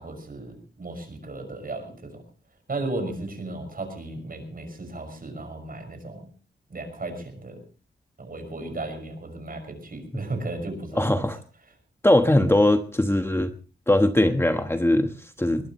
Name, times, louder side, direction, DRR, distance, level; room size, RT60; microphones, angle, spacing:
voice 1, 0.0-2.2 2.7-6.3 6.7-7.6 8.2-11.1, right 2 dB, 50° right, 7 dB, 6.1 m, -35 dB
voice 2, 11.0-11.4 12.0-13.5 13.9-15.7, left 1 dB, 10° left, 6 dB, 1.2 m, -21 dB
21.5 x 20.0 x 3.1 m, 0.36 s
wide cardioid pair, 90°, 20 cm